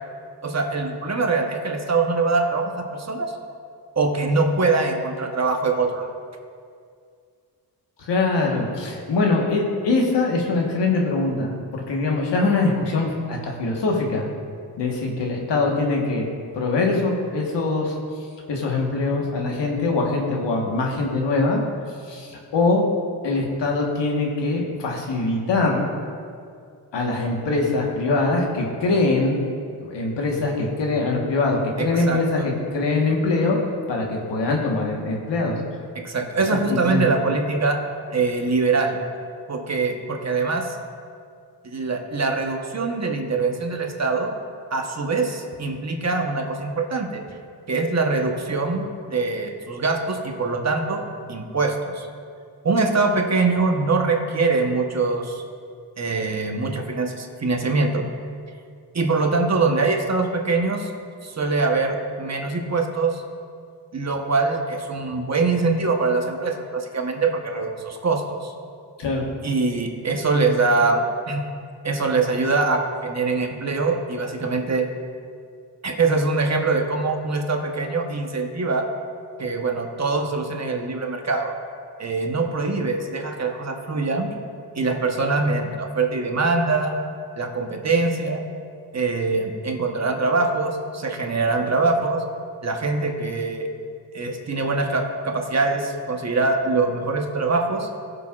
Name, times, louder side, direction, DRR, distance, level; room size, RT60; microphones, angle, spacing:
voice 1, 0.4-3.3 3.9-6.1 31.8-32.5 35.9-37.8 38.1-39.0 39.5-40.8 41.6-44.3 44.7-47.2 47.7-51.0 51.3-52.1 52.6-55.4 56.0-58.1 58.9-60.9 61.2-63.2 63.9-68.5 69.4-71.4 71.8-74.9 75.8-78.9 79.4-81.5 82.0-84.3 84.7-86.9 87.4-88.4 88.9-92.2 92.6-93.7 94.1-97.9, right 3 dB, 40° right, 3 dB, 1.2 m, -23 dB
voice 2, 8.0-14.2 14.8-16.3 16.5-17.9 18.5-21.6 22.0-22.8 23.2-25.9 26.9-29.4 29.8-33.6 33.9-35.6 36.7-37.0 69.0-69.2, left 3 dB, 90° left, -1 dB, 1.5 m, -23 dB
16.5 x 6.8 x 2.5 m, 2.3 s
cardioid pair, 80°, 42 cm